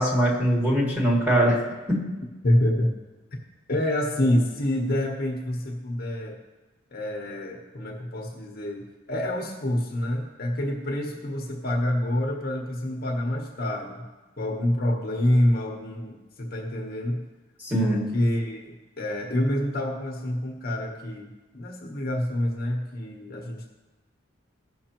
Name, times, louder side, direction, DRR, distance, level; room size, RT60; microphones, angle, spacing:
voice 1, 0.0-1.6 1.9-2.1 17.6-18.2, equal, 10° right, -4 dB, 2.2 m, -22 dB
voice 2, 2.4-2.9 3.3-3.4 3.7-6.4 6.9-14.0 14.4-17.2 17.8-23.7, left 1 dB, 45° left, 0 dB, 1.0 m, -27 dB
15.5 x 6.1 x 2.9 m, 1.2 s
head